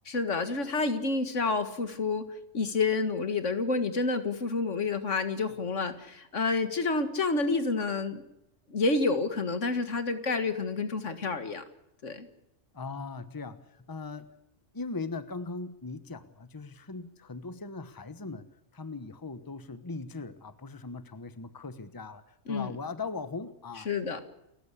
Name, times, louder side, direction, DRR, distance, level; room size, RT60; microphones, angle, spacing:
voice 1, 0.1-2.2 2.5-8.2 8.7-11.6 12.0-12.3 22.5-22.7 23.9-24.2, left 3 dB, 75° left, 9 dB, 2.1 m, -29 dB
voice 2, 12.7-13.6 13.9-14.3 14.7-23.9, left 3 dB, 20° left, 12 dB, 1.1 m, -39 dB
29.0 x 14.5 x 8.3 m, 0.83 s
omnidirectional pair, 1.3 m